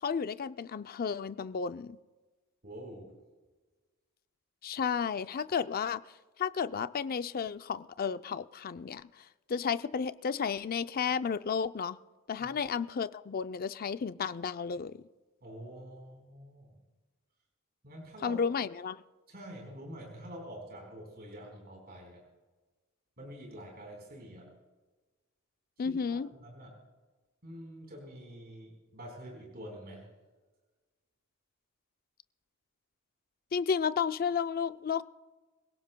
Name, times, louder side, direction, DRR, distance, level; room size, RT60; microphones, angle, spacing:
voice 1, 0.0-2.0 4.6-6.0 6.4-9.1 9.5-12.0 12.3-15.0 18.2-19.0 25.8-26.3 33.5-35.0, left 6 dB, 45° left, 13 dB, 0.4 m, -32 dB
voice 2, 2.6-3.2 12.4-12.5 15.4-16.8 17.8-18.4 19.3-22.2 23.2-24.5 25.8-26.7 27.4-30.1, equal, 50° right, 0 dB, 4.2 m, -47 dB
25.5 x 17.5 x 2.2 m, 1.3 s
head